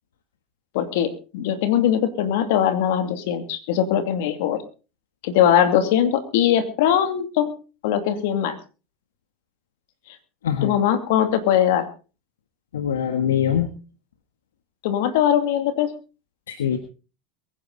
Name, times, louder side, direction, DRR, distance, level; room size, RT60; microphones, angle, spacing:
voice 1, 0.7-4.6 5.2-7.5 7.8-8.6 10.1-10.2 10.6-11.9 14.8-15.9, left 10 dB, 70° left, 9 dB, 2.6 m, -21 dB
voice 2, 10.4-10.8 12.7-13.7 16.5-16.8, left 9 dB, 90° left, 9 dB, 1.5 m, -23 dB
22.5 x 10.5 x 4.0 m, 0.35 s
hypercardioid pair, 90°, 0 cm